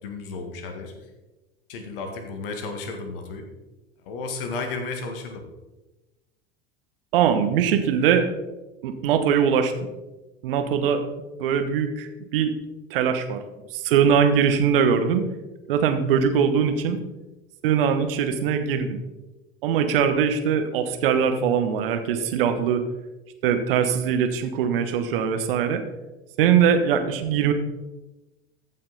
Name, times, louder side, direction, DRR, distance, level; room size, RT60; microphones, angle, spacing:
voice 1, 0.0-0.9 1.7-3.5 4.1-5.5, left 3 dB, 60° left, 5 dB, 1.9 m, -33 dB
voice 2, 7.1-8.3 8.8-9.7 10.4-11.0 11.4-12.5 12.9-13.4 13.7-15.2 15.7-17.0 17.6-19.0 19.6-22.8 23.4-25.8 26.4-27.5, right 7 dB, 60° right, 8 dB, 1.2 m, -21 dB
14.5 x 5.8 x 4.1 m, 1.1 s
figure-of-eight pair, 75°, 31 cm